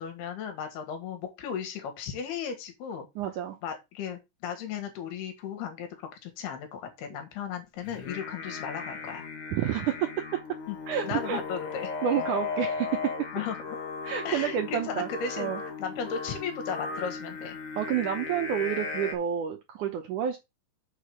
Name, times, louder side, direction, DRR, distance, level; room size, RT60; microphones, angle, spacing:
voice 1, 0.0-3.1 3.6-5.9 6.2-9.3 10.7-10.8 11.0-12.3 13.3-13.6 14.3-17.6, left 7 dB, 80° left, 6 dB, 3.6 m, -35 dB
voice 2, 3.2-3.6 9.5-10.4 10.9-11.4 12.0-13.1 14.0-15.1 15.4-15.6 17.8-20.4, right 9 dB, 75° right, 5 dB, 1.9 m, -29 dB
Singing, 7.8-19.1, left 4 dB, 50° left, 1.7 m, -36 dB
6.8 x 4.9 x 6.4 m, 0.23 s
omnidirectional pair, 4.6 m